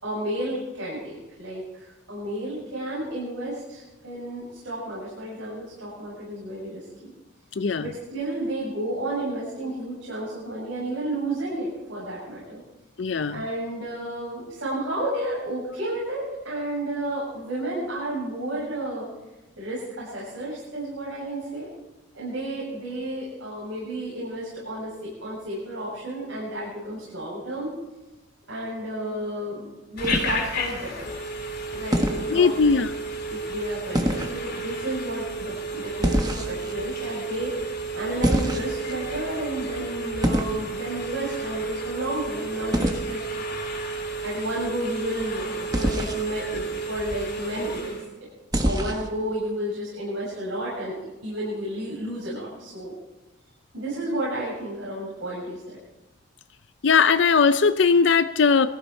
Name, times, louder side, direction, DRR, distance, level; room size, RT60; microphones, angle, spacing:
voice 1, 0.0-7.1 7.8-12.6 13.3-19.1 19.6-21.7 22.1-27.7 28.5-31.1 31.7-32.7 33.3-43.2 44.2-48.0 48.6-51.0 51.2-52.9 53.7-55.8, right 1 dB, 85° right, -7 dB, 7.1 m, -32 dB
voice 2, 13.0-13.4 32.3-32.9 56.8-58.7, left 5 dB, 65° left, 12 dB, 0.5 m, -19 dB
Telephone, 30.0-48.1, right 2 dB, 45° left, 3.0 m, -32 dB
sound 1, 30.0-30.7 31.9-32.3 33.9-34.4 36.0-36.7 38.2-38.9 40.2-40.6 42.7-43.0 45.7-46.2 48.5-49.1, equal, 20° right, 1.2 m, -25 dB
22.0 x 15.0 x 4.4 m, 1.0 s
head